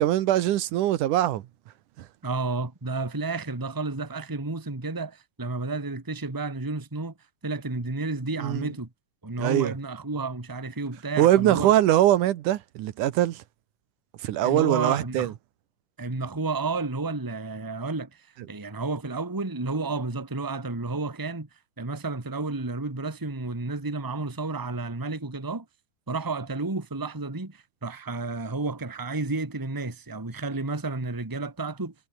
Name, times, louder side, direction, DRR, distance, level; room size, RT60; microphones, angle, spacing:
voice 1, 0.0-1.4 8.4-8.7 9.4-9.7 11.2-13.4 14.2-15.3, right 13 dB, 80° right, 2.5 m, -22 dB
voice 2, 2.2-7.1 7.4-8.9 9.2-11.7 14.4-15.3 16.0-21.5 21.8-25.6 26.1-31.9, right 3 dB, 10° right, 1.6 m, -31 dB
omnidirectional pair, 3.7 m